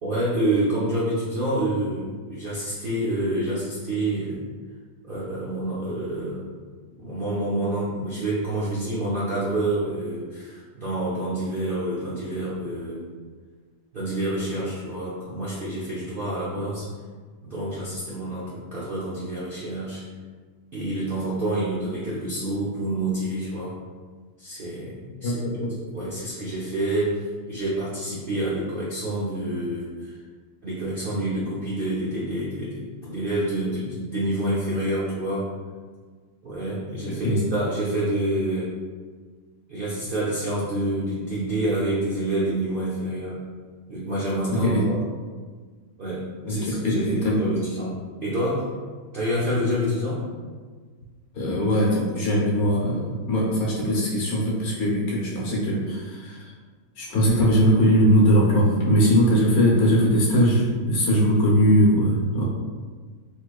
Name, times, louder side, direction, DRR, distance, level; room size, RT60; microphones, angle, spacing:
voice 1, 0.0-4.4 5.0-6.5 7.0-13.1 13.9-16.8 17.4-20.0 20.7-23.8 24.4-25.4 25.8-30.1 30.6-35.5 36.4-38.7 39.7-43.4 43.9-45.0 46.0-48.7 49.1-50.3, right 1 dB, 60° right, -8 dB, 0.5 m, -28 dB
voice 2, 25.2-25.7 37.2-37.4 44.5-44.9 46.4-47.4 51.3-56.4 57.0-62.4, equal, 65° left, -4 dB, 1.2 m, -20 dB
3.7 x 3.0 x 2.3 m, 1.5 s
omnidirectional pair, 1.8 m